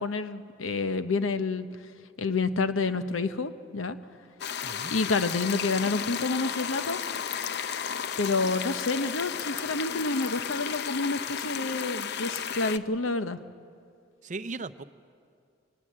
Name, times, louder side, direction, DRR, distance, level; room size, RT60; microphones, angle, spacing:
voice 1, 0.0-1.7 2.2-4.0 4.9-7.0 8.2-13.4, left 3 dB, 85° left, 10 dB, 0.9 m, -28 dB
sound 1, 4.4-12.8, left 8 dB, 60° left, 0.6 m, -33 dB
voice 2, 14.2-14.8, right 3 dB, 40° right, 13 dB, 0.6 m, -37 dB
25.0 x 19.5 x 7.5 m, 2.3 s
head